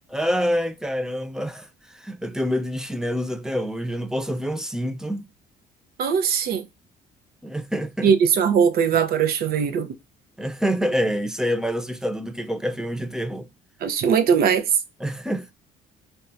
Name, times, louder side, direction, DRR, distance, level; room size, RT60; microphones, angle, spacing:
voice 1, 0.1-5.3 7.4-8.1 10.4-13.5 15.0-15.5, equal, 5° right, 0.3 m, -27 dB
voice 2, 6.0-6.6 8.0-9.9 13.8-14.6, right 7 dB, 65° right, 0.6 m, -20 dB
4.3 x 2.2 x 2.5 m
cardioid pair, 110°, 17 cm